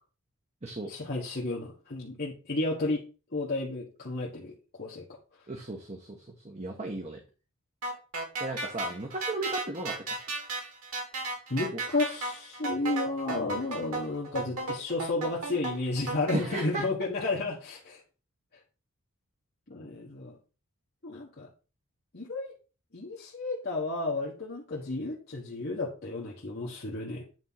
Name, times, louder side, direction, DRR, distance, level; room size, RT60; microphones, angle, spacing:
voice 1, 0.9-3.0 3.3-5.1 11.5-18.0 19.7-20.4 21.0-21.5 22.1-22.5 22.9-27.2, left 2 dB, 45° left, -4 dB, 1.4 m, -32 dB
voice 2, 5.5-7.2 8.4-10.2 11.7-11.8 16.3-16.8, right 2 dB, 30° right, 2 dB, 1.1 m, -35 dB
sound 1, 7.8-16.4, right 3 dB, 80° right, 3.1 m, -35 dB
9.2 x 3.7 x 5.6 m, 0.34 s
head